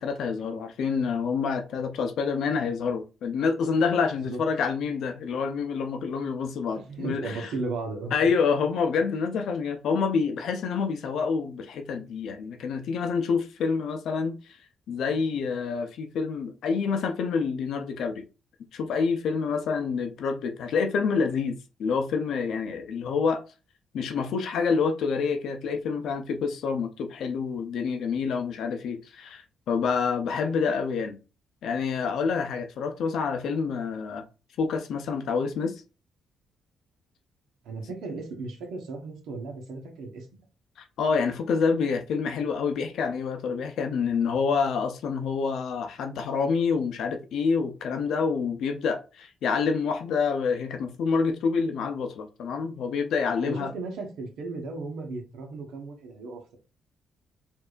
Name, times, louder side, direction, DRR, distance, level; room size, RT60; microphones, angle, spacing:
voice 1, 0.0-7.5 8.1-14.4 14.9-18.2 18.7-23.4 23.9-31.2 31.6-34.2 34.6-35.8 40.8-53.7, left 5 dB, 75° left, 0.6 m, -27 dB
voice 2, 6.9-8.1 37.6-40.3 53.4-56.6, right 3 dB, 80° right, 1.1 m, -35 dB
4.5 x 2.7 x 2.4 m
cardioid pair, 90°, 0 cm